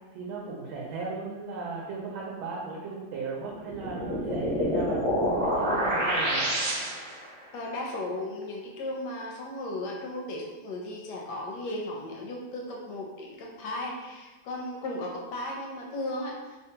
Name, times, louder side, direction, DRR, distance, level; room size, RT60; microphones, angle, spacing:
voice 1, 0.1-6.5, right 4 dB, 90° right, -3 dB, 1.4 m, -37 dB
sound 1, 3.6-7.3, equal, 35° right, 0.8 m, -27 dB
voice 2, 7.5-16.6, left 1 dB, 75° left, -1 dB, 1.0 m, -35 dB
3.6 x 2.1 x 2.7 m, 1.2 s
omnidirectional pair, 2.2 m